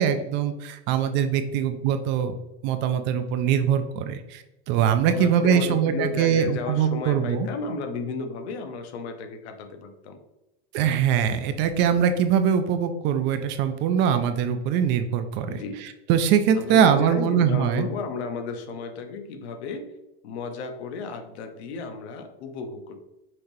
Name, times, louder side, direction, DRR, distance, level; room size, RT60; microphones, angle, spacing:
voice 1, 0.0-2.3 2.6-7.5 10.7-15.5 15.8-17.9, right 8 dB, 35° right, 9 dB, 0.4 m, -22 dB
voice 2, 5.1-10.2 15.5-15.9 16.5-20.0 20.2-23.0, left 4 dB, 85° left, 6 dB, 0.9 m, -33 dB
5.8 x 3.3 x 2.6 m, 0.96 s
supercardioid pair, 155°, 32 cm